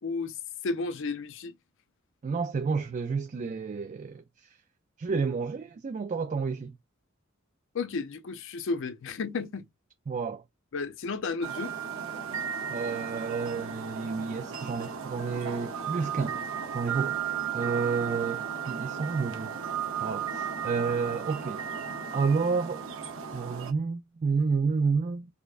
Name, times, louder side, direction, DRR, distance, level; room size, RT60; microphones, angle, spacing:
voice 1, 0.0-0.4 0.6-1.5 7.7-9.7 10.7-11.7, left 4 dB, 65° left, 0.5 m, -32 dB
voice 2, 2.2-4.6 5.0-6.8 10.1-10.4 12.7-17.2 17.5-19.6 20.0-21.6 22.1-22.8 23.3-25.3, right 5 dB, 35° right, 0.3 m, -30 dB
sound 1, 11.4-23.7, right 7 dB, 70° right, 0.7 m, -35 dB
4.5 x 2.2 x 2.4 m
head